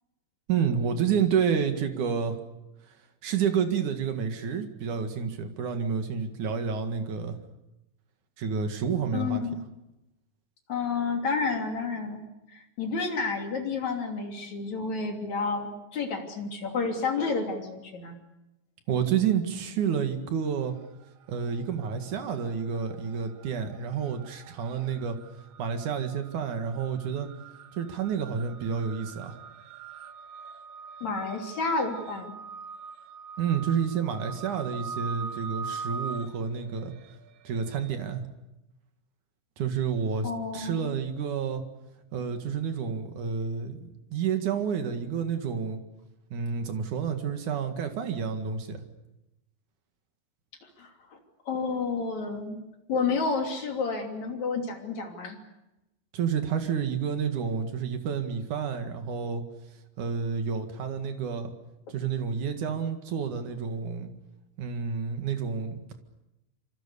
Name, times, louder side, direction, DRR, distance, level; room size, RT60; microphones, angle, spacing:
voice 1, 0.5-2.4 3.2-7.4 8.4-9.4 18.9-20.7 21.3-25.2 25.6-27.3 27.8-29.3 33.4-36.9 37.4-38.2 39.6-41.6 42.1-45.8 46.3-48.8 56.1-59.4 60.0-61.5 61.9-64.1 64.6-65.9, right 7 dB, 55° right, 6 dB, 2.4 m, -29 dB
voice 2, 9.1-9.6 10.7-12.2 12.5-18.2 31.0-32.3 40.2-40.9 50.6-51.2 51.5-52.6 52.9-55.4, left 4 dB, 40° left, 3 dB, 3.7 m, -30 dB
sound 1, 20.4-21.0 21.3-37.9, right 5 dB, 85° right, 2.0 m, -43 dB
26.5 x 26.0 x 6.9 m, 0.93 s
omnidirectional pair, 5.9 m